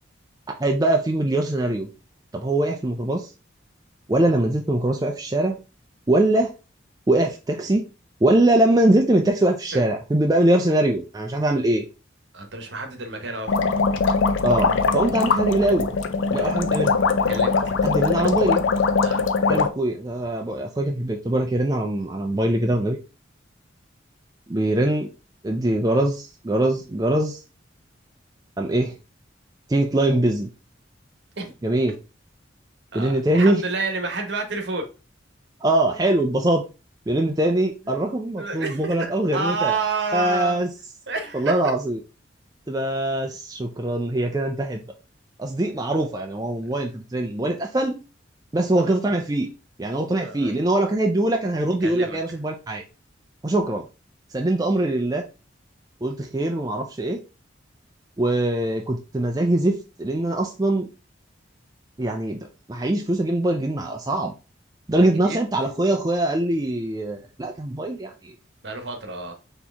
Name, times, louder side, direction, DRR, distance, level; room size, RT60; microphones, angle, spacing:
voice 1, 0.5-1.9 2.3-3.3 4.1-5.6 6.1-6.5 7.1-7.8 8.2-11.8 14.4-15.9 16.3-17.0 17.8-18.6 19.5-23.0 24.5-25.1 25.4-27.4 28.6-28.9 29.7-30.5 31.6-31.9 32.9-33.6 35.6-36.6 37.1-39.8 40.1-40.7 41.3-42.0 42.7-44.8 45.4-48.0 48.5-49.5 49.8-52.8 53.4-53.8 54.3-55.2 56.0-57.2 58.2-60.9 62.0-64.3 64.9-68.3, right 1 dB, 20° right, 0.4 m, -22 dB
voice 2, 12.3-13.6 16.3-16.5 17.3-17.7 19.0-19.3 31.4-31.5 32.9-34.9 37.9-38.0 38.4-39.1 39.3-40.6 41.1-41.7 48.8-49.0 50.1-50.5 51.8-52.2 65.0-65.4 68.6-69.3, right 3 dB, 65° right, 1.0 m, -29 dB
sound 1, 13.5-19.7, left 4 dB, 80° left, 0.4 m, -21 dB
4.3 x 2.9 x 3.4 m
head